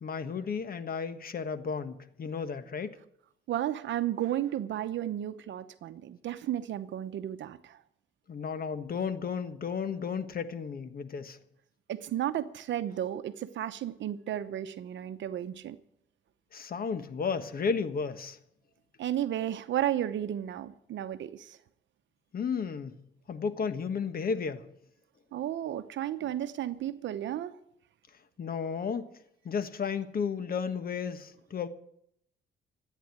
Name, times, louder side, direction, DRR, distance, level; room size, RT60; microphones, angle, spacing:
voice 1, 0.0-3.0 8.3-11.4 16.5-18.4 22.3-22.9 23.3-24.7 28.4-29.1 29.4-31.7, left 6 dB, 50° left, 1.4 m, -33 dB
voice 2, 3.5-7.8 11.9-15.8 19.0-21.6 25.3-27.6, right 11 dB, 70° right, 0.8 m, -33 dB
13.5 x 9.2 x 9.3 m
cardioid pair, 90°, 20 cm